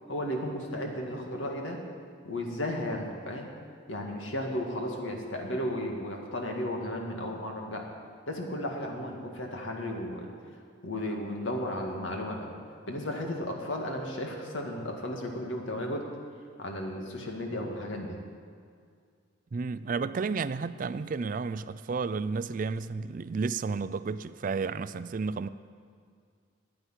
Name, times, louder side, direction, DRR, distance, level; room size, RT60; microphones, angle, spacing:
voice 1, 0.1-1.8 2.2-3.5 3.9-7.8 8.3-10.3 10.8-12.5 12.9-16.1 16.6-18.2, left 1 dB, 75° left, 2.1 m, -34 dB
voice 2, 19.5-25.5, right 4 dB, 40° right, 0.3 m, -32 dB
10.0 x 10.0 x 9.9 m
head